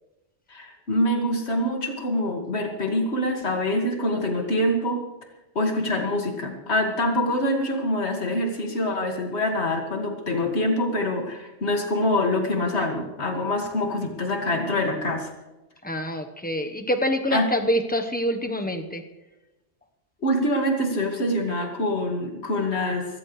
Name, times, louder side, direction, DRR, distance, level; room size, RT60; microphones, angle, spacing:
voice 1, 0.5-5.0 5.6-15.3 17.3-17.5 20.2-23.1, left 1 dB, 70° left, 3 dB, 2.4 m, -25 dB
voice 2, 15.8-19.0, equal, 10° left, 5 dB, 1.0 m, -26 dB
23.0 x 14.0 x 3.3 m, 1.0 s
omnidirectional pair, 1.2 m